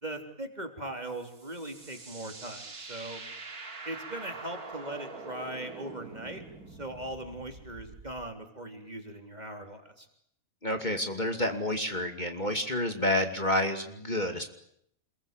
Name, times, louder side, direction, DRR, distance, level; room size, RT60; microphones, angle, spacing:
voice 1, 0.0-3.2 3.8-10.1, right 1 dB, 30° right, 5 dB, 3.8 m, -40 dB
sound 1, 1.1-8.3, right 4 dB, 90° right, 3.2 m, -45 dB
voice 2, 10.6-14.5, left 1 dB, 30° left, 6 dB, 2.7 m, -29 dB
27.5 x 22.0 x 9.1 m, 0.70 s
omnidirectional pair, 1.5 m